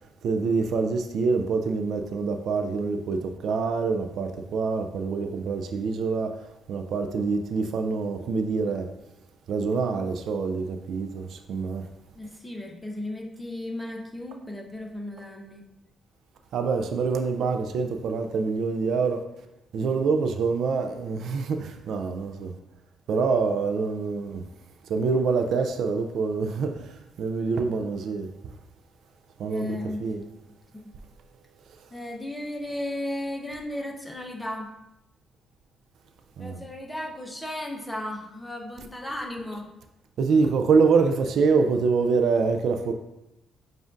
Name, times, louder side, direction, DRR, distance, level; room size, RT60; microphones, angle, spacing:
voice 1, 0.2-6.3 6.7-8.9 9.5-11.9 16.5-19.2 19.7-22.6 23.1-24.4 24.9-28.5 29.4-30.3 36.4-36.6 40.2-42.9, right 4 dB, 70° right, 0.3 m, -25 dB
voice 2, 12.2-15.6 29.5-30.0 31.9-34.7 36.4-39.7, left 1 dB, 10° left, 0.8 m, -35 dB
7.1 x 2.4 x 2.5 m
cardioid pair, 90°, 0 cm